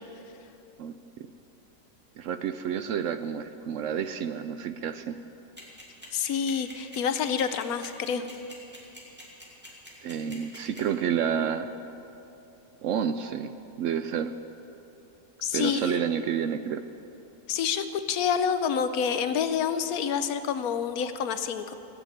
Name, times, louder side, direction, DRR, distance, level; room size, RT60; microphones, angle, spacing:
voice 1, 0.8-1.3 2.2-5.2 10.0-11.7 12.8-13.5 13.8-14.3 15.5-16.8, right 8 dB, 70° right, 10 dB, 0.8 m, -29 dB
sound 1, 5.6-10.8, equal, 5° right, 2.7 m, -44 dB
voice 2, 6.1-8.2 15.4-16.0 17.5-21.7, left 7 dB, 75° left, 10 dB, 1.2 m, -28 dB
17.0 x 8.2 x 8.8 m, 2.9 s
omnidirectional pair, 1.6 m